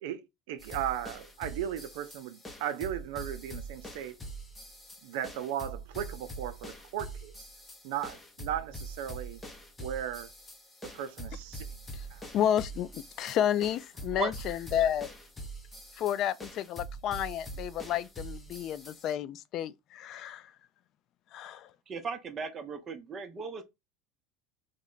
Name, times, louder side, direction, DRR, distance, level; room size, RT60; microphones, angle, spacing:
voice 1, 0.0-4.2 5.0-7.3 7.8-9.4 9.8-10.3 10.8-11.7 12.1-12.2, right 10 dB, 80° right, 0.5 m, -36 dB
sound 1, 0.6-19.1, right 2 dB, 15° left, 0.6 m, -44 dB
voice 2, 12.3-15.1 16.0-20.5 21.3-21.7, left 10 dB, 45° left, 0.3 m, -31 dB
voice 3, 21.9-23.6, right 5 dB, 30° right, 0.6 m, -36 dB
3.2 x 2.1 x 3.7 m
supercardioid pair, 135°, 0 cm